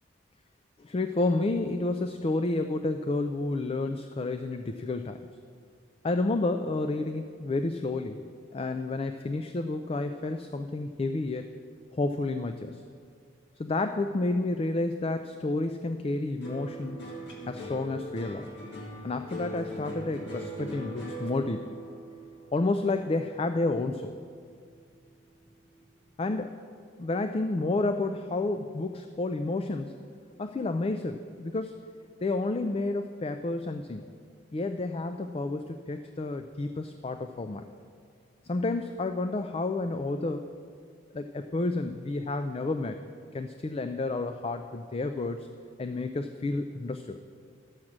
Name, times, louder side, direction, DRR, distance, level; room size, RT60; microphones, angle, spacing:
voice 1, 0.8-5.2 6.0-8.3 8.5-11.5 11.9-12.8 13.6-17.1 17.5-18.5 19.0-21.8 22.5-24.2 26.2-26.6 27.0-30.0 30.4-31.8 32.2-34.1 34.5-37.7 38.4-40.5 41.1-43.0 43.3-45.5 45.8-47.2, left 2 dB, 30° left, 8 dB, 0.3 m, -30 dB
sound 1, 16.4-24.9 25.2-25.8, right 1 dB, 60° left, 1.8 m, -41 dB
12.0 x 6.3 x 7.3 m, 2.2 s
head